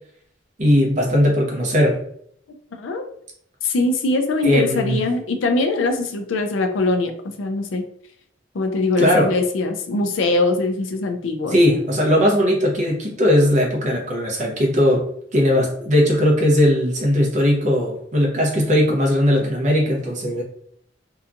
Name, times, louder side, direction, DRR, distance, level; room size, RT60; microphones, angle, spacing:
voice 1, 0.6-2.0 4.4-5.0 9.0-9.3 11.5-15.0 15.3-20.4, equal, 40° right, -1 dB, 0.6 m, -18 dB
voice 2, 2.7-3.1 3.6-7.9 8.5-11.6, left 2 dB, 80° left, 6 dB, 0.4 m, -22 dB
2.8 x 2.3 x 2.5 m, 0.66 s
head